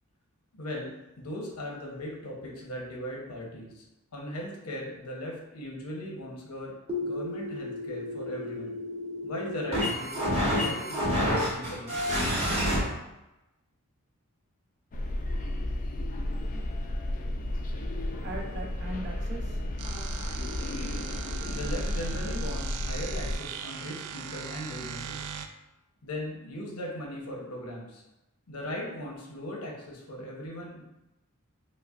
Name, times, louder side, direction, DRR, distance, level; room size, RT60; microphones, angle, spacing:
voice 1, 0.5-3.8 4.1-6.7 7.0-8.8 9.2-12.1 21.5-25.3 26.0-28.0 28.5-30.8, left 1 dB, 85° left, -2 dB, 0.9 m, -38 dB
sound 1, 6.9-12.8, equal, 25° right, 1.0 m, -29 dB
sound 2, 14.9-23.4, left 1 dB, 35° left, 0.4 m, -32 dB
voice 2, 18.2-19.6 20.0-20.5 21.2-21.5, right 1 dB, 50° right, 0 dB, 0.7 m, -41 dB
sound 3, 19.8-25.5, right 8 dB, 90° right, 0.3 m, -40 dB
5.4 x 2.2 x 2.4 m, 0.95 s
head